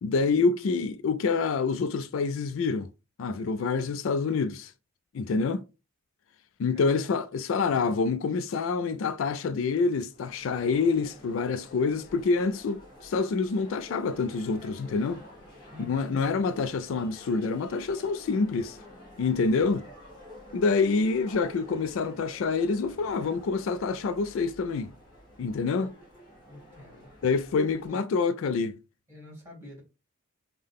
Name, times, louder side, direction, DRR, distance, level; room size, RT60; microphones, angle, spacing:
voice 1, 0.0-2.9 3.2-4.7 5.1-5.6 6.6-15.2 15.8-18.8 19.2-19.8 20.5-24.9 25.4-25.9 27.2-28.7, left 4 dB, 65° left, 0.3 m, -27 dB
voice 2, 6.7-7.1 15.7-16.2 26.4-27.1 27.9-28.1 29.1-29.8, equal, 10° right, 2.1 m, -47 dB
sound 1, 10.1-27.9, left 1 dB, 20° left, 2.0 m, -49 dB
5.5 x 2.1 x 3.4 m
head